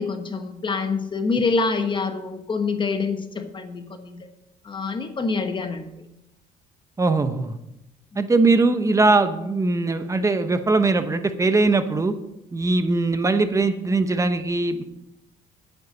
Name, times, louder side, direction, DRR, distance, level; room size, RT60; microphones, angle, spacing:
voice 1, 0.0-4.3 4.6-6.0, left 4 dB, 30° left, 7 dB, 1.3 m, -26 dB
voice 2, 7.0-7.6 8.1-12.1 12.5-14.8, right 3 dB, 20° right, 9 dB, 1.0 m, -21 dB
9.6 x 9.3 x 5.3 m, 0.86 s
cardioid pair, 110°, 17 cm